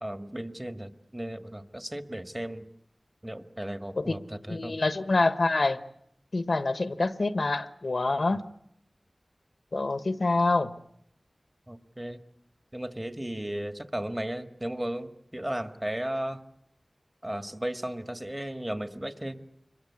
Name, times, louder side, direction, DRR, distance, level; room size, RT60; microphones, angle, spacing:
voice 1, 0.0-2.7 3.2-4.8 11.7-12.2 12.7-16.4 17.2-19.4, right 1 dB, 20° right, 1.9 m, -35 dB
voice 2, 4.5-5.8 6.3-8.4 9.7-10.7, left 3 dB, 75° left, 1.2 m, -26 dB
26.0 x 22.0 x 8.4 m
wide cardioid pair, 45°, 0 cm